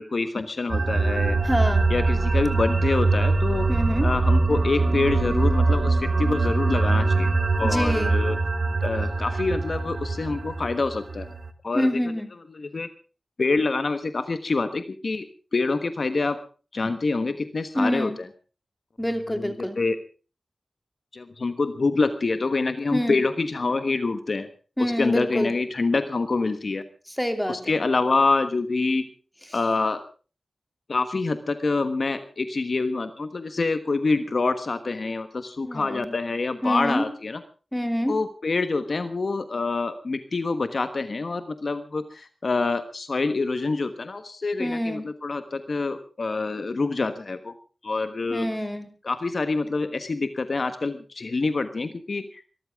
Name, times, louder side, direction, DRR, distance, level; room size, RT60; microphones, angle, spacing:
voice 1, 0.0-1.4 1.9-3.7 4.0-7.3 7.6-8.4 8.8-11.3 11.6-12.0 12.5-12.9 13.4-15.3 15.5-16.4 16.7-18.3 19.3-20.0 21.1-24.5 24.8-26.8 27.5-29.1 29.5-30.0 30.9-37.4 38.1-47.5 47.8-48.5 49.0-52.5, left 3 dB, 65° left, 10 dB, 1.3 m, -26 dB
sound 1, 0.7-11.5, right 3 dB, 70° right, 1.5 m, -23 dB
voice 2, 1.4-1.9 3.7-4.1 7.6-8.2 11.7-12.3 17.7-18.2 19.0-19.8 22.9-23.2 24.8-25.6 27.2-27.8 35.6-36.1 36.6-37.1 37.7-38.2 44.6-45.0 48.3-48.9, equal, 5° left, 6 dB, 3.0 m, -26 dB
23.5 x 14.0 x 3.6 m, 0.36 s
wide cardioid pair, 65°, 0 cm